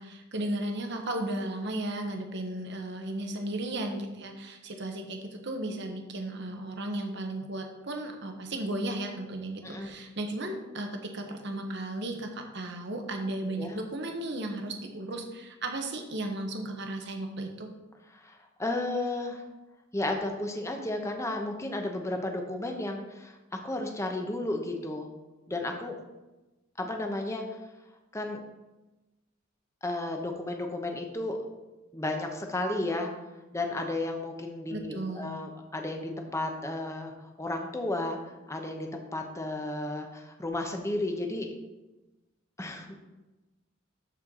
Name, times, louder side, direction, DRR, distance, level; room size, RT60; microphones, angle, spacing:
voice 1, 0.0-17.7 34.7-35.3, right 1 dB, 60° right, 4 dB, 1.2 m, -35 dB
voice 2, 18.1-19.4 19.9-23.4 23.6-25.1 25.5-26.0 26.8-27.6 28.1-28.4 29.8-31.4 31.9-33.1 33.5-41.5 42.6-42.9, left 2 dB, 15° left, 3 dB, 0.9 m, -33 dB
12.5 x 4.6 x 3.8 m, 1.1 s
head